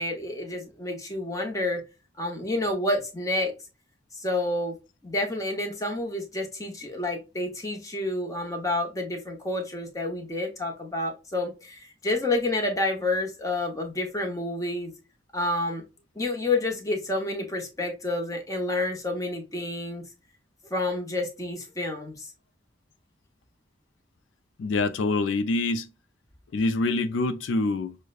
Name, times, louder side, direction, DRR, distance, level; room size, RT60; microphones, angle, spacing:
voice 1, 0.0-1.8 2.2-3.5 4.2-4.8 5.0-14.9 15.3-15.8 16.2-20.0 20.7-22.3, left 2 dB, 15° left, 0.8 m, -29 dB
voice 2, 24.6-25.9 26.5-28.0, left 3 dB, 75° left, 0.4 m, -25 dB
6.2 x 2.1 x 2.3 m
head